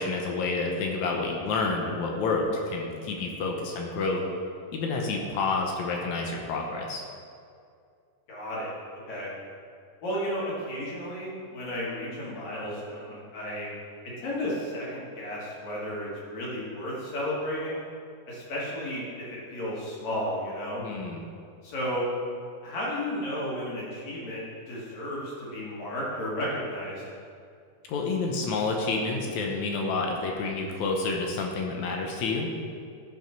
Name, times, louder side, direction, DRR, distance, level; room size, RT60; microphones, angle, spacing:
voice 1, 0.0-4.2 4.7-7.0 20.8-21.2 27.9-32.5, left 3 dB, 70° left, 0 dB, 1.9 m, -29 dB
voice 2, 8.3-9.3 10.0-13.7 14.2-17.8 18.3-19.0 19.3-20.8 21.6-22.1 22.6-27.0, equal, 55° left, -6 dB, 3.2 m, -33 dB
13.5 x 5.3 x 4.6 m, 2.3 s
omnidirectional pair, 4.2 m